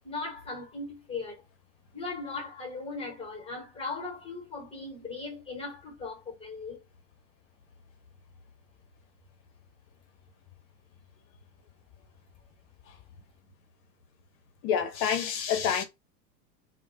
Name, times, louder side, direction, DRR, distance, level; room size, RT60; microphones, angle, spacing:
voice 1, 0.0-1.4 1.9-6.8, left 3 dB, 10° left, 1.1 m, -38 dB
voice 2, 14.6-15.8, left 8 dB, 40° left, 0.7 m, -27 dB
2.2 x 2.1 x 2.6 m
hypercardioid pair, 100°, 49 cm